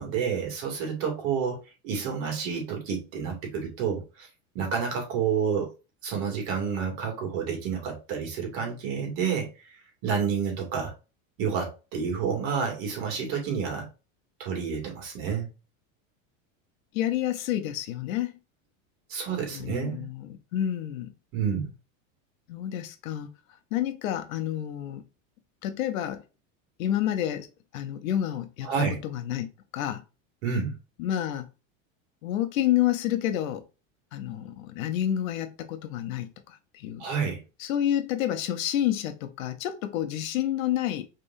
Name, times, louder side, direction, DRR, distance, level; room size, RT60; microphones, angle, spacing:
voice 1, 0.0-1.6 1.8-4.3 4.5-5.7 6.0-9.7 10.0-10.9 11.4-13.9 14.4-15.5 19.1-20.0 21.3-21.7 28.6-29.0 30.4-30.8 37.0-37.4, right 6 dB, 55° right, 2.3 m, -29 dB
voice 2, 16.9-18.3 19.5-21.1 22.5-23.3 23.7-25.0 25.6-26.2 26.8-27.5 27.7-28.7 29.0-30.0 31.0-31.5 32.2-33.6 34.1-37.1 37.6-41.1, left 11 dB, 80° left, 1.0 m, -29 dB
5.1 x 3.4 x 2.6 m
supercardioid pair, 150°, 40 cm